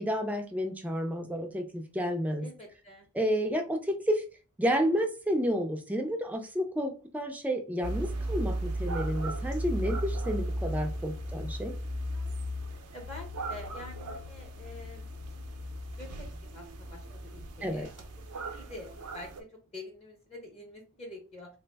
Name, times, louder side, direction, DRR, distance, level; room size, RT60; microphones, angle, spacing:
voice 1, 0.0-2.5 3.1-4.2 4.6-11.7 17.6-17.9, equal, 5° right, 4 dB, 0.4 m, -30 dB
voice 2, 2.4-3.1 10.8-10.9 11.3-11.5 12.9-15.4 16.0-16.3 16.5-16.6 16.9-21.5, left 1 dB, 25° left, 0 dB, 0.7 m, -47 dB
sound 1, 7.8-19.4, right 1 dB, 90° right, 0.5 m, -36 dB
3.2 x 2.0 x 3.3 m, 0.34 s
head